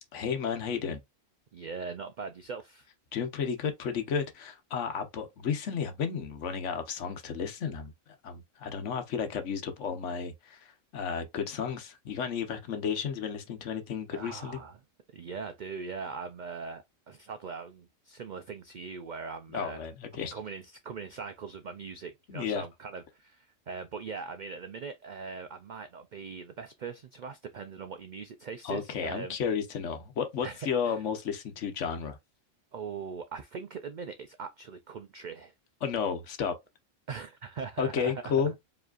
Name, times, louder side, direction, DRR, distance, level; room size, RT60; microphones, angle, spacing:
voice 1, 0.1-1.0 3.1-7.9 8.2-14.6 19.5-20.3 22.3-22.6 28.6-32.2 35.8-36.6 37.8-38.5, left 7 dB, 65° left, 1.1 m, -32 dB
voice 2, 1.5-2.9 14.1-14.8 15.1-19.9 20.1-29.4 30.4-31.0 32.7-35.5 37.1-38.5, right 5 dB, 90° right, 0.4 m, -41 dB
4.8 x 3.1 x 2.4 m
omnidirectional pair, 1.3 m